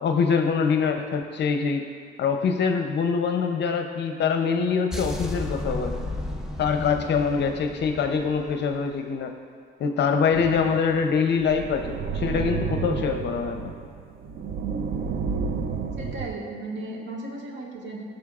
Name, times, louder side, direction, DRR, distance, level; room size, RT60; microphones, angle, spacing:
voice 1, 0.0-1.8 2.2-6.0 6.6-9.3 9.8-13.7, left 5 dB, 60° left, 5 dB, 0.6 m, -24 dB
sound 1, 4.9-9.0, left 1 dB, ahead, 0.8 m, -33 dB
sound 2, 10.3-16.3, right 5 dB, 50° right, 0.6 m, -31 dB
voice 2, 15.9-18.0, right 2 dB, 70° right, -2 dB, 1.6 m, -35 dB
15.0 x 6.4 x 2.4 m, 2.2 s
cardioid pair, 90°, 20 cm